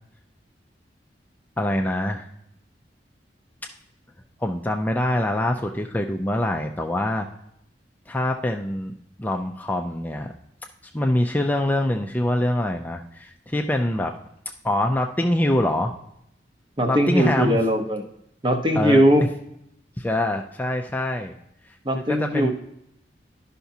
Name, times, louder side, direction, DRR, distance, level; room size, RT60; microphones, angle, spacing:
voice 1, 1.6-2.3 4.4-7.3 8.1-8.9 9.2-10.3 10.9-14.1 14.6-16.0 16.9-17.6 18.8-19.0 20.0-21.3 21.7-22.5, left 1 dB, 10° left, 3 dB, 0.4 m, -24 dB
voice 2, 16.8-18.0 18.4-19.2 21.8-22.5, equal, 30° right, 4 dB, 0.8 m, -20 dB
11.5 x 5.8 x 2.7 m, 0.76 s
head